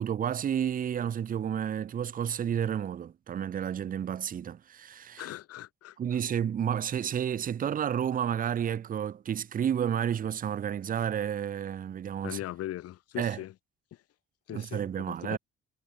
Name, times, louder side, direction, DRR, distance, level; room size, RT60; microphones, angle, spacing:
voice 1, 0.0-5.3 6.0-12.4 13.2-13.4 14.5-15.4, right 9 dB, 30° right, 0.4 m, -31 dB
voice 2, 5.2-6.0 12.2-13.5 14.5-15.4, left 14 dB, 55° left, 0.5 m, -39 dB
cardioid pair, 90°, 30 cm